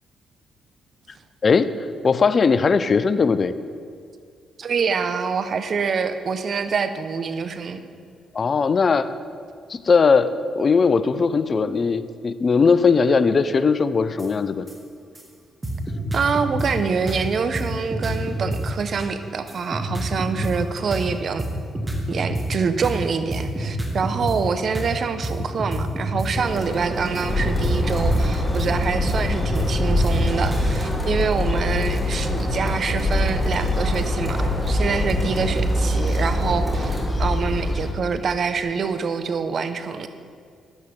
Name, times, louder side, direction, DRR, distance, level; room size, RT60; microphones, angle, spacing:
voice 1, 2.0-3.5 8.3-9.1 9.7-14.7, left 5 dB, 45° left, 14 dB, 0.4 m, -19 dB
voice 2, 4.6-7.8 16.1-21.4 22.1-40.1, right 5 dB, 55° right, 10 dB, 0.5 m, -25 dB
sound 1, 14.2-14.3 14.7-14.8 15.2-15.3 15.6-16.7 17.1-17.2 17.5-17.7 17.9-18.6 19.0-21.5 21.7-22.5 22.8-22.9 23.3-24.4 24.7-24.9 25.2-25.3 25.6-26.3 26.7-29.2 29.4-30.9, right 1 dB, 25° right, 1.4 m, -27 dB
sound 2, 26.3-37.1, equal, 5° left, 2.1 m, -30 dB
sound 3, 27.3-37.9, left 1 dB, 30° left, 1.0 m, -24 dB
9.9 x 7.9 x 3.2 m, 2.2 s
hypercardioid pair, 45°, 0 cm